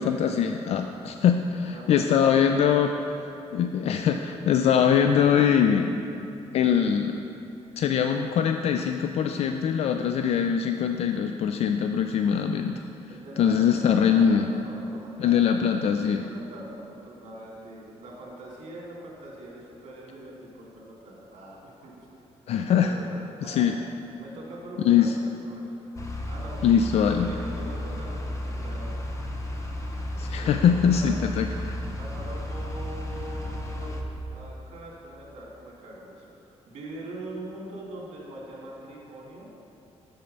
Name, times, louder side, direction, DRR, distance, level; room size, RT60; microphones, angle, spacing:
voice 1, 0.0-2.9 3.2-6.0 6.5-7.2 7.8-12.8 13.4-14.5 15.2-16.3 22.5-22.9 23.5-23.7 24.8-25.1 26.6-27.3 30.2-31.8, left 8 dB, 65° left, 6 dB, 0.4 m, -22 dB
voice 2, 1.6-2.6 13.1-15.6 16.0-22.1 22.8-23.2 23.4-23.8 24.2-25.9 26.3-26.6 27.3-29.0 30.2-31.2 32.0-34.0 34.3-39.5, right 1 dB, 80° right, -3 dB, 2.2 m, -42 dB
sound 1, 26.0-34.0, left 1 dB, 30° left, 0.8 m, -33 dB
7.6 x 7.0 x 5.3 m, 2.7 s
cardioid pair, 135°, 11 cm